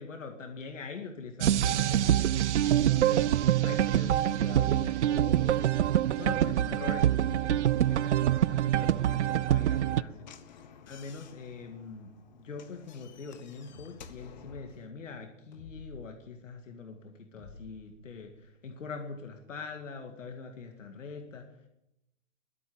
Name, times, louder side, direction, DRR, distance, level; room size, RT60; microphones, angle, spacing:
voice 1, 0.0-21.6, left 4 dB, 70° left, 4 dB, 2.1 m, -43 dB
sound 1, 1.4-10.0, right 11 dB, 65° right, 0.5 m, -25 dB
Slam / Knock, 9.0-14.9, left 7 dB, 35° left, 1.0 m, -52 dB
sound 2, 13.7-13.9 15.5-16.1 17.4-18.5, left 3 dB, 50° left, 6.6 m, -50 dB
21.0 x 8.7 x 6.9 m, 0.87 s
hypercardioid pair, 170°, 39 cm